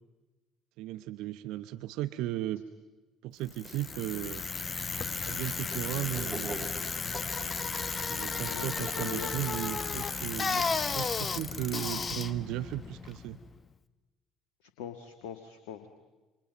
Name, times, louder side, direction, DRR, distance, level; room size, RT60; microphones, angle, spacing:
voice 1, 0.8-2.6 3.2-4.4 5.2-6.7 8.1-13.4, right 14 dB, 65° right, 13 dB, 0.9 m, -36 dB
Bicycle, 3.5-13.6, left 5 dB, 35° left, 1.3 m, -34 dB
sound 1, 3.6-4.1 5.2-5.4 6.7-7.1 8.2-8.5, right 4 dB, 40° right, 6.3 m, -56 dB
sound 2, 5.5-10.8, right 1 dB, 5° right, 6.3 m, -46 dB
voice 2, 8.5-9.3 14.6-15.9, left 9 dB, 70° left, 8 dB, 1.6 m, -42 dB
29.5 x 26.5 x 5.3 m, 1.2 s
figure-of-eight pair, 55°, 0 cm